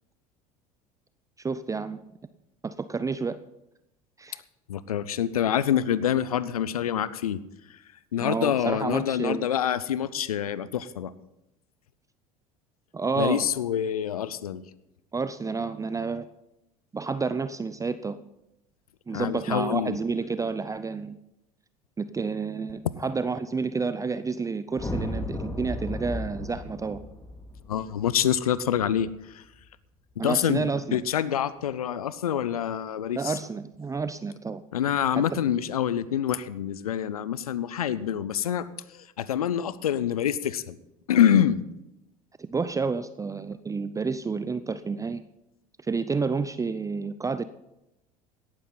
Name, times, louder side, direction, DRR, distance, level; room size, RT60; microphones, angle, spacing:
voice 1, 1.4-2.0 2.6-3.4 4.2-4.4 8.2-9.5 12.9-13.5 15.1-16.3 16.9-18.2 19.1-21.2 22.0-27.0 30.2-31.0 33.2-34.6 35.1-35.5 42.4-45.2 45.8-47.4, right 4 dB, 15° right, 13 dB, 0.6 m, -30 dB
voice 2, 4.7-7.4 8.1-11.1 13.2-14.6 19.1-20.0 27.7-29.1 29.3-29.4 30.2-33.3 34.7-40.8 41.1-41.6, left 9 dB, 85° left, 17 dB, 0.6 m, -26 dB
sound 1, 24.7-29.1, left 1 dB, 15° left, 2.4 m, -35 dB
17.0 x 12.5 x 4.0 m, 0.88 s
hypercardioid pair, 70°, 18 cm